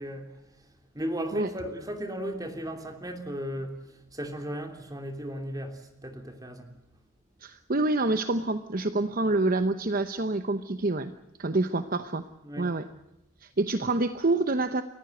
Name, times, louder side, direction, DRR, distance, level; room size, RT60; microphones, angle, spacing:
voice 1, 0.0-6.7 12.4-12.7, equal, 15° right, 5 dB, 3.0 m, -36 dB
voice 2, 7.4-11.1 11.4-12.2 12.6-12.8 13.4-14.8, right 2 dB, 40° right, 10 dB, 0.9 m, -27 dB
29.5 x 14.5 x 7.9 m, 0.93 s
head